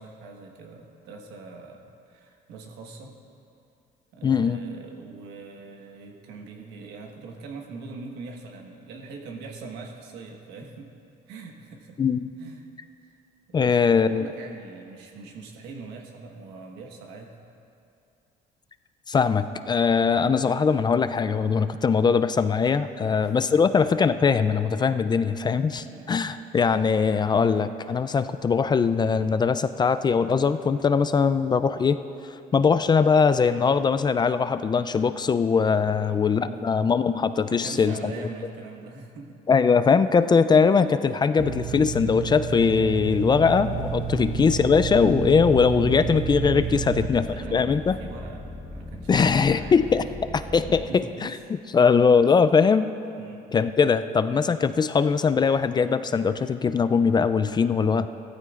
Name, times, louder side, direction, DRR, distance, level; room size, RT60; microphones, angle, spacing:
voice 1, 0.0-3.2 4.1-10.9 11.3-12.0 12.4-12.6 13.0-13.2 13.5-17.3 23.0-23.7 25.8-26.2 35.9-36.9 37.5-39.4 44.1-44.4 46.7-49.9 50.6-51.4 51.7-51.9 53.2-53.5, right 4 dB, 90° right, 2 dB, 1.4 m, -42 dB
voice 2, 4.2-4.6 12.0-12.3 13.5-14.3 19.1-32.0 32.5-38.1 39.5-48.0 49.1-50.0 50.3-51.3 51.7-52.9 53.5-58.1, left 5 dB, 25° left, 12 dB, 0.3 m, -21 dB
sound 1, 41.4-47.1, right 10 dB, 55° right, 0.5 m, -31 dB
sound 2, 43.7-50.9, left 1 dB, 5° right, 1.2 m, -38 dB
15.5 x 13.5 x 2.5 m, 2.6 s
cardioid pair, 110°, 17 cm